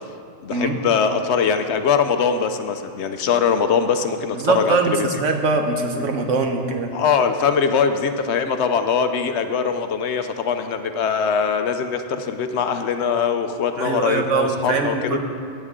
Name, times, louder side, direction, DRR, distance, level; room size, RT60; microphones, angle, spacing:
voice 1, 0.4-5.2 6.9-15.2, left 6 dB, 70° left, 8 dB, 0.9 m, -22 dB
voice 2, 4.3-6.9 13.8-15.2, right 4 dB, 85° right, 4 dB, 1.3 m, -22 dB
15.0 x 8.8 x 3.7 m, 2.3 s
omnidirectional pair, 1.2 m